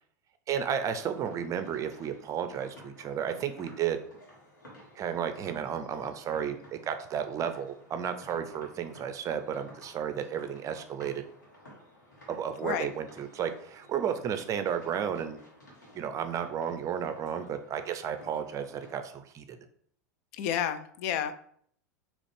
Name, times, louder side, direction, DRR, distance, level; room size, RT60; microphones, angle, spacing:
voice 1, 0.5-4.0 5.0-11.2 12.3-15.4 15.9-19.6, right 8 dB, 35° right, 8 dB, 0.5 m, -33 dB
sound 1, 0.8-19.0, equal, 85° left, 1.6 m, -54 dB
voice 2, 20.3-21.3, left 9 dB, 60° left, 11 dB, 0.4 m, -31 dB
4.0 x 3.0 x 3.3 m, 0.63 s
hypercardioid pair, 90°, 10 cm